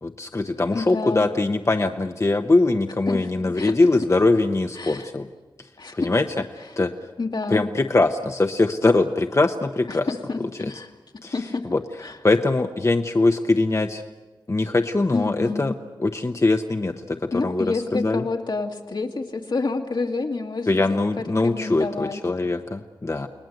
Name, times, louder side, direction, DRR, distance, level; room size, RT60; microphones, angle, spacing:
voice 1, 0.0-5.3 5.9-6.2 6.8-6.9 7.5-10.1 10.6-10.7 11.2-11.3 11.7-11.8 12.2-14.0 14.5-15.7 16.0-18.2 20.7-23.3, left 2 dB, 35° left, 6 dB, 0.9 m, -22 dB
voice 2, 0.7-1.3 3.1-3.3 3.6-3.7 4.8-5.1 5.8-6.1 6.6-6.8 7.2-7.7 9.9-10.4 10.7-10.9 11.3-11.7 12.0-12.2 15.1-15.6 17.3-22.2, left 3 dB, 70° left, 2 dB, 2.1 m, -28 dB
30.0 x 19.5 x 7.9 m, 1.2 s
wide cardioid pair, 90°, 8 cm